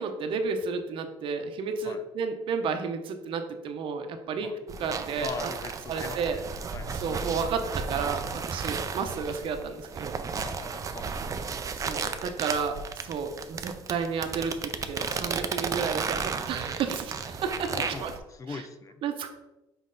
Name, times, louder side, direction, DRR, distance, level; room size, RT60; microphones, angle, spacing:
voice 1, 0.0-4.5 4.8-5.3 5.9-6.4 6.9-10.2 11.7-17.7 18.0-18.1 18.5-18.6 19.0-19.3, right 5 dB, 60° right, 6 dB, 0.8 m, -32 dB
sound 1, 4.7-18.2, right 5 dB, 35° right, 0.5 m, -34 dB
voice 2, 5.2-6.4 6.7-7.1 10.4-11.4 15.1-15.5 17.7-18.9, left 4 dB, 35° left, 10 dB, 0.5 m, -41 dB
5.5 x 4.5 x 3.8 m, 1.0 s
cardioid pair, 95°, 10 cm